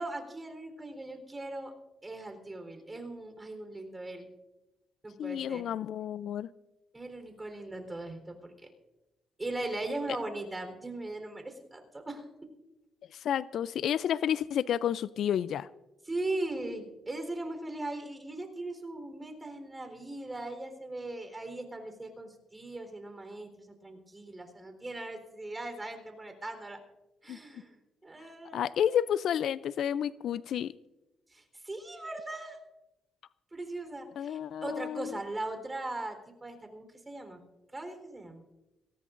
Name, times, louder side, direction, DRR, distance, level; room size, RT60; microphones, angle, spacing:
voice 1, 0.0-1.7 2.0-4.3 5.0-5.7 6.9-8.7 9.4-12.3 16.1-26.8 27.2-27.8 28.0-28.6 31.3-32.6 33.5-37.4 37.7-38.4, right 2 dB, 20° right, 5 dB, 3.8 m, -39 dB
voice 2, 5.2-6.5 13.1-15.7 27.3-27.4 28.5-30.7 34.2-35.2, left 9 dB, 70° left, 17 dB, 0.4 m, -30 dB
23.0 x 17.5 x 2.6 m, 0.99 s
cardioid pair, 90°, 0 cm